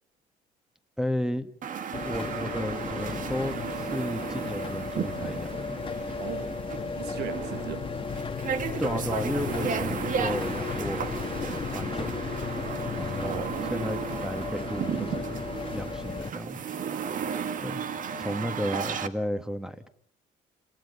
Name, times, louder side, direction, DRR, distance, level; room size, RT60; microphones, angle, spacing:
voice 1, 1.0-1.5 2.0-5.8 8.8-11.2 11.7-12.3 13.0-15.5 15.7-16.6 17.6-17.8 18.2-19.9, equal, 5° right, 1.8 m, -33 dB
sound 1, 1.6-19.1, right 7 dB, 50° right, 1.9 m, -34 dB
sound 2, 1.9-16.3, left 5 dB, 30° left, 1.6 m, -34 dB
voice 2, 6.1-6.6 6.9-7.9 8.1-8.2 13.2-13.6 17.4-17.7, right 13 dB, 85° right, 1.3 m, -39 dB
28.0 x 27.5 x 5.6 m
cardioid pair, 110°, 17 cm